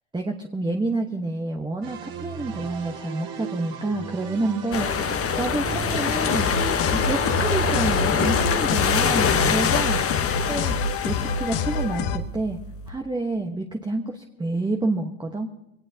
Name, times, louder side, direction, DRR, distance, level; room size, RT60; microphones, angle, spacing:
voice 1, 0.1-6.5 6.9-10.0 10.5-10.8 11.0-12.6 12.9-15.5, right 2 dB, 10° right, 3 dB, 1.1 m, -28 dB
sound 1, 1.8-8.5, right 9 dB, 50° right, 2.1 m, -35 dB
sound 2, 4.7-12.9, left 7 dB, 30° left, 1.1 m, -25 dB
sound 3, 6.3-12.2, left 5 dB, 70° left, 1.5 m, -27 dB
22.0 x 18.0 x 2.8 m, 0.86 s
supercardioid pair, 95°, 45 cm